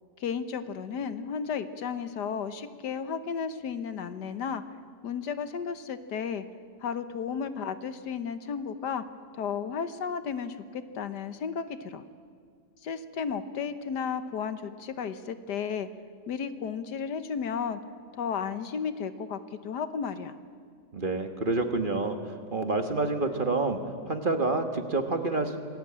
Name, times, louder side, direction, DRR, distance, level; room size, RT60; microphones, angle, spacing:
voice 1, 0.2-4.6 5.0-6.4 6.8-9.0 9.4-12.0 12.8-15.9 16.3-17.8 18.2-20.3, left 6 dB, 75° left, 11 dB, 1.6 m, -33 dB
voice 2, 20.9-23.8 24.0-25.6, right 3 dB, 30° right, 6 dB, 1.6 m, -28 dB
26.5 x 19.5 x 8.8 m, 2.1 s
omnidirectional pair, 1.8 m